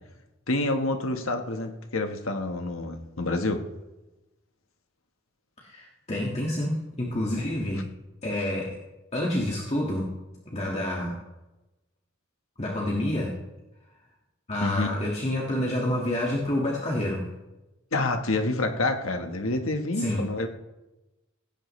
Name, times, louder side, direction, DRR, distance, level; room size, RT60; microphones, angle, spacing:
voice 1, 0.5-3.6 14.6-14.9 17.9-20.5, left 2 dB, 85° left, 5 dB, 1.4 m, -28 dB
voice 2, 5.6-7.9 8.2-8.8 9.1-10.1 10.5-11.2 12.6-13.3 14.5-17.3 20.0-20.3, left 1 dB, 30° left, -3 dB, 1.9 m, -28 dB
17.0 x 16.5 x 3.2 m, 1.0 s
head